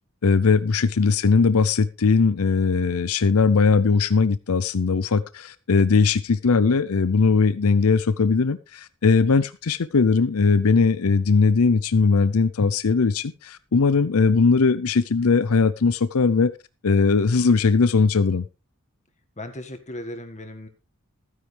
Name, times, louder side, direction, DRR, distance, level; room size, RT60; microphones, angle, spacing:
voice 1, 0.2-16.5 16.8-18.4, left 4 dB, 75° left, 15 dB, 0.6 m, -19 dB
voice 2, 19.4-20.7, left 1 dB, 30° left, 6 dB, 1.8 m, -36 dB
15.5 x 9.8 x 3.4 m, 0.29 s
head